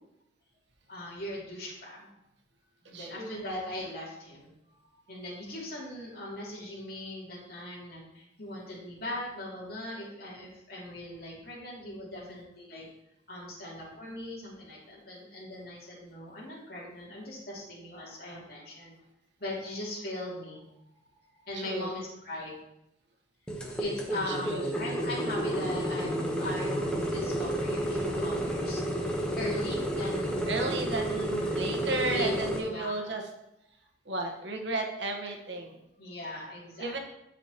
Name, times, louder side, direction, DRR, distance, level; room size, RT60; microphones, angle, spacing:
voice 1, 0.9-2.1 2.9-4.5 4.9-12.9 13.3-18.9 19.4-20.6 21.4-22.5 23.8-28.8 29.3-30.4 32.1-33.0 36.0-36.9, left 1 dB, 55° left, -6 dB, 2.6 m, -39 dB
voice 2, 2.9-3.4 12.1-12.2 21.5-21.9 24.3-24.7 30.5-33.2 34.0-35.8 36.8-37.0, right 2 dB, 75° right, 2 dB, 1.2 m, -34 dB
sound 1, 23.5-32.6, right 1 dB, 5° left, 1.0 m, -31 dB
12.5 x 5.0 x 3.0 m, 0.86 s
head